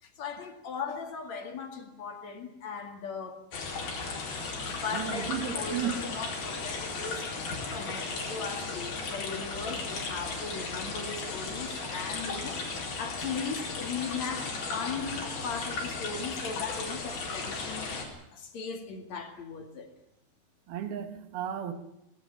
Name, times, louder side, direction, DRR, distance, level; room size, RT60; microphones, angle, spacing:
voice 1, 0.0-3.4 4.7-19.9, left 5 dB, 50° left, 3.1 m, -38 dB
sound 1, 3.5-18.0, left 4 dB, 90° left, 6.1 m, -36 dB
voice 2, 4.9-6.0 20.7-21.7, right 9 dB, 85° right, 3.6 m, -34 dB
18.5 x 17.5 x 10.0 m
omnidirectional pair, 4.3 m